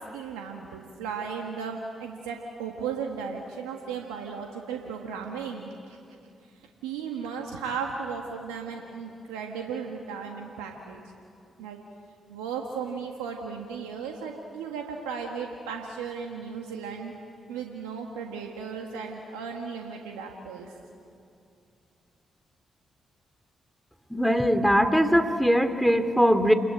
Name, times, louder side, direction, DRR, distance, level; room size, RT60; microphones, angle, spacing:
voice 1, 0.0-6.0 6.8-11.0 11.6-11.8 12.3-17.1 17.5-20.7, right 6 dB, 90° right, 2 dB, 1.6 m, -35 dB
voice 2, 24.1-26.5, equal, ahead, 9 dB, 2.5 m, -21 dB
29.0 x 21.0 x 8.8 m, 2.5 s
hypercardioid pair, 45°, 0 cm